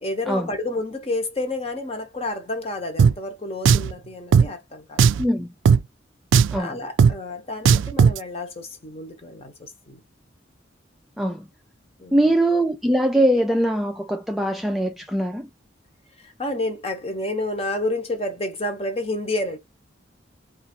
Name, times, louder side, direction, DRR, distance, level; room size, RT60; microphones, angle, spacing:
voice 1, 0.0-5.3 6.5-10.0 12.0-12.3 16.2-19.6, left 2 dB, 30° left, 0.9 m, -30 dB
Drum, 3.0-3.1 3.6-3.9 4.3-4.5 5.0-5.2 5.6-5.8 6.3-6.6 7.0-7.1 7.6-8.2, right 6 dB, 85° right, 0.3 m, -15 dB
voice 2, 12.1-15.5, right 1 dB, ahead, 0.4 m, -22 dB
3.9 x 2.5 x 4.3 m
head